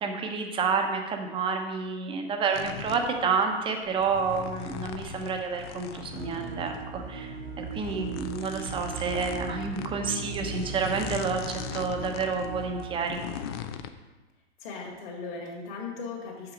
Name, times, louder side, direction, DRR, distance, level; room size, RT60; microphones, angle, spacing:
voice 1, 0.0-13.2, right 5 dB, 15° right, 4 dB, 0.9 m, -29 dB
sound 1, 2.5-13.9, left 8 dB, 25° left, 0.3 m, -40 dB
sound 2, 6.1-12.9, right 5 dB, 80° right, 1.4 m, -38 dB
voice 2, 14.6-16.5, left 4 dB, 45° left, -2 dB, 2.3 m, -38 dB
7.2 x 6.0 x 5.1 m, 1.2 s
hypercardioid pair, 120°, 33 cm